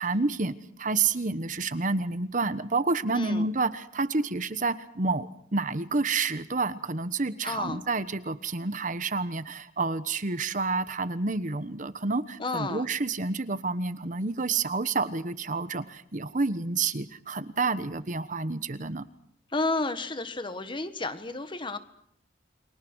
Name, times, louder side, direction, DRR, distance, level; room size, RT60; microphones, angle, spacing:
voice 1, 0.0-19.0, right 3 dB, 45° right, 13 dB, 1.2 m, -29 dB
voice 2, 3.1-3.5 7.4-7.8 12.4-12.9 19.5-21.8, left 3 dB, 25° left, 11 dB, 1.6 m, -31 dB
29.5 x 24.0 x 6.4 m, 0.68 s
head